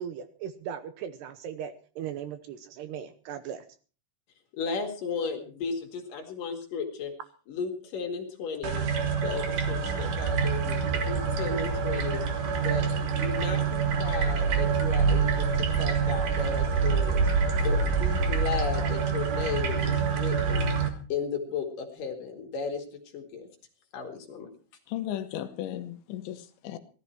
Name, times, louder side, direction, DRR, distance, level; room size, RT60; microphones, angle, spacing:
voice 1, 0.0-3.6, right 9 dB, 75° right, 10 dB, 2.7 m, -38 dB
voice 2, 4.5-7.1 7.5-8.8 9.2-12.2 12.6-17.2 17.6-20.7 21.1-22.8 23.1-23.5 23.9-24.5, left 5 dB, 55° left, 3 dB, 3.2 m, -35 dB
sound 1, 8.6-20.9, right 5 dB, 55° right, 2.8 m, -26 dB
voice 3, 24.9-26.8, left 12 dB, 75° left, 9 dB, 3.2 m, -35 dB
18.0 x 13.5 x 4.4 m, 0.39 s
omnidirectional pair, 5.4 m